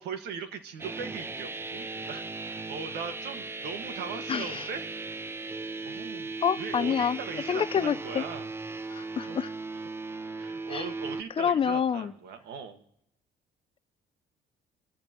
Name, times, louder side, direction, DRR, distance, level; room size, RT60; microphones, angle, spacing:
voice 1, 0.0-4.9 5.8-8.5 9.3-9.4 10.4-12.8, right 6 dB, 80° right, 1.7 m, -39 dB
sound 1, 0.8-11.2, right 3 dB, 15° right, 0.6 m, -37 dB
voice 2, 4.3-4.7 6.4-8.2 8.9-9.5 10.7-10.9 11.4-12.1, left 7 dB, 35° left, 0.5 m, -28 dB
29.0 x 14.5 x 3.0 m
cardioid pair, 110°, 17 cm